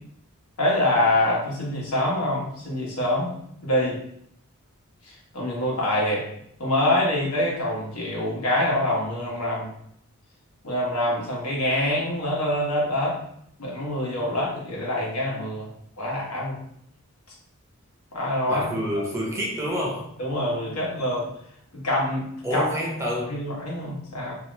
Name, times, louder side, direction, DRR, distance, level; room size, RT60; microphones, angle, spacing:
voice 1, 0.6-3.3 3.6-4.0 5.3-6.2 6.6-9.7 10.6-13.2 13.6-15.7 16.0-16.6 18.1-19.1 20.2-21.3 21.7-22.3 22.5-22.6 23.3-24.4, left 1 dB, 90° left, -4 dB, 1.1 m, -25 dB
voice 2, 18.5-20.1 22.4-23.4, equal, 15° right, -2 dB, 0.6 m, -28 dB
2.7 x 2.5 x 3.1 m, 0.69 s
head